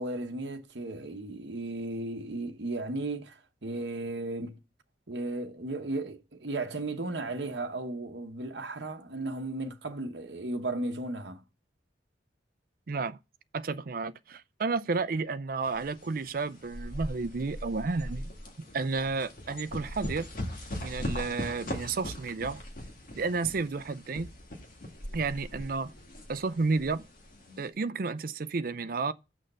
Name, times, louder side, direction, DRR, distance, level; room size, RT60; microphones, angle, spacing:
voice 1, 0.0-4.6 5.1-11.4, right 2 dB, 75° right, 1.0 m, -35 dB
voice 2, 12.9-13.2 13.5-18.3 18.7-20.3 20.8-22.6 23.2-24.3 25.1-25.9 26.3-27.0 27.6-29.1, right 4 dB, 50° right, 0.5 m, -31 dB
sound 1, 15.6-27.7, left 1 dB, 50° left, 2.0 m, -40 dB
6.4 x 6.4 x 6.6 m
head